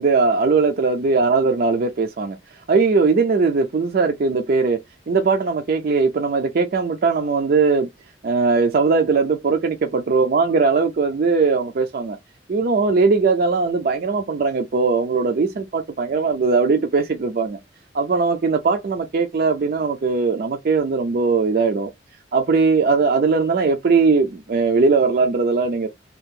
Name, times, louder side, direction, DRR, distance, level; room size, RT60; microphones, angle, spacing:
voice 1, 0.0-4.8 5.1-7.9 8.2-12.2 12.5-17.6 17.9-21.9 22.3-25.9, right 4 dB, 50° right, 0.4 m, -19 dB
2.8 x 2.4 x 3.5 m
head